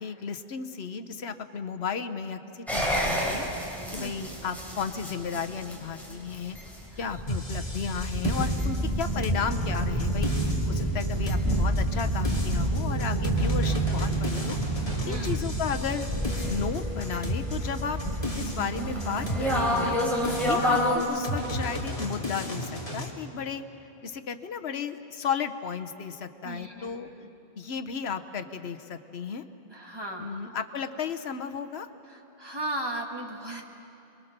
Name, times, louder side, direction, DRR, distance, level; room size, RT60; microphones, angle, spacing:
voice 1, 0.0-6.6 7.0-14.6 15.1-16.1 16.5-18.0 18.4-19.9 20.4-23.6 24.0-27.1 27.6-29.4 30.2-31.9, left 6 dB, 85° left, 8 dB, 1.2 m, -34 dB
sound 1, 2.7-21.0, equal, ahead, 4.5 m, -29 dB
voice 2, 6.9-7.4 15.0-15.4 20.5-20.7 26.4-27.3 29.7-30.4 32.1-33.6, right 1 dB, 25° right, 0 dB, 2.1 m, -37 dB
sound 2, 7.3-23.1, equal, 35° left, 2.5 m, -35 dB
sound 3, 8.2-20.9, right 9 dB, 85° right, 2.0 m, -36 dB
29.0 x 22.0 x 6.7 m, 3.0 s
omnidirectional pair, 1.0 m